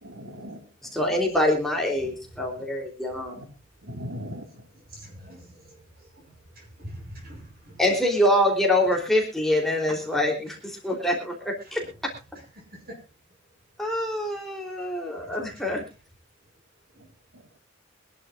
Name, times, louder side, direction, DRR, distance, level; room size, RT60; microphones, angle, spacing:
voice 1, 0.0-0.9 3.3-3.4 3.8-4.7 17.3-17.4, equal, 85° right, 3.1 m, -39 dB
voice 2, 0.9-3.4 7.8-11.8 13.8-15.8, left 1 dB, ahead, 3.3 m, -25 dB
voice 3, 1.9-2.4 4.7-7.8 11.6-11.9 12.4-12.5 12.7-13.0 15.1-15.7 16.9-17.1, equal, 50° right, 7.1 m, -46 dB
24.5 x 11.5 x 2.5 m
head